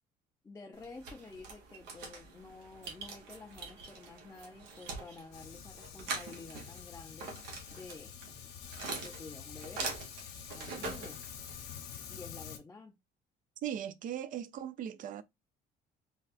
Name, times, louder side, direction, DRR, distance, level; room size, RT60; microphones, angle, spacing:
voice 1, 0.4-8.1 8.8-10.0 10.5-11.2 12.1-12.9, left 3 dB, 15° left, 0.4 m, -50 dB
sound 1, 0.7-11.8, right 4 dB, 85° right, 1.0 m, -44 dB
Fire, 5.3-12.6, left 8 dB, 80° left, 0.8 m, -47 dB
voice 2, 13.6-15.2, right 10 dB, 50° right, 0.4 m, -38 dB
3.4 x 2.2 x 2.4 m
cardioid pair, 110°, 17 cm